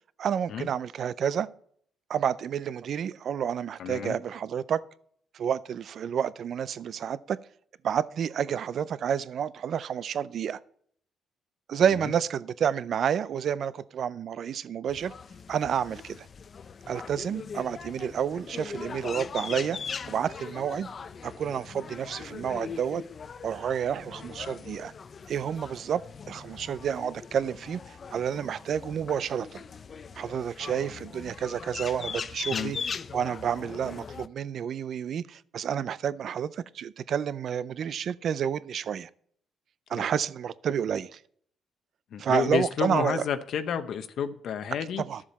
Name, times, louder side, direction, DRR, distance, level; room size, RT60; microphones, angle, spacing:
voice 1, 0.2-1.5 2.1-4.8 5.3-7.4 7.8-10.6 11.7-15.1 15.5-16.3 16.9-19.8 20.1-20.9 21.2-23.0 23.4-24.9 25.3-26.0 26.3-29.6 30.2-32.8 33.1-39.1 39.9-41.2 42.2-43.2 45.1-45.2, right 8 dB, 55° right, 0.4 m, -29 dB
voice 2, 3.8-4.2 12.0-12.1 30.9-31.1 32.5-32.7 39.9-40.1 42.1-45.0, left 8 dB, 65° left, 0.8 m, -31 dB
sound 1, 14.9-34.3, left 6 dB, 40° left, 0.5 m, -40 dB
13.0 x 7.3 x 4.2 m
cardioid pair, 125°, 0 cm